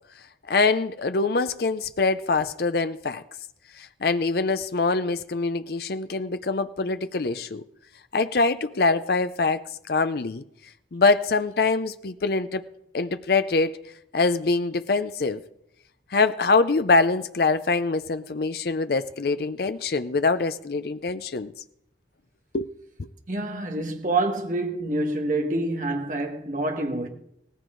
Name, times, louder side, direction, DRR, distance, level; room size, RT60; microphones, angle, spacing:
voice 1, 0.5-3.2 3.8-7.6 8.1-10.4 10.9-12.6 12.9-13.7 14.1-15.4 16.1-21.5 22.5-22.7 23.0-23.1, left 3 dB, 55° left, 0.5 m, -24 dB
voice 2, 23.3-27.1, right 2 dB, 45° right, 1.9 m, -27 dB
17.5 x 14.5 x 3.9 m
head